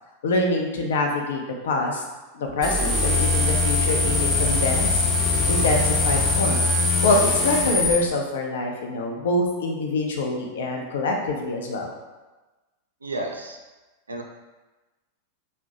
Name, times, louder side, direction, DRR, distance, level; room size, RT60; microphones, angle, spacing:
voice 1, 0.2-2.0 2.3-5.0 5.5-6.6 7.0-11.9, left 2 dB, 60° left, 1 dB, 0.5 m, -25 dB
sound 1, 2.6-7.9, left 3 dB, 20° left, 0.6 m, -22 dB
voice 2, 13.0-13.6 14.1-14.2, right 2 dB, 75° right, 2 dB, 0.4 m, -31 dB
2.6 x 2.1 x 3.9 m, 1.2 s
figure-of-eight pair, 90°, 0 cm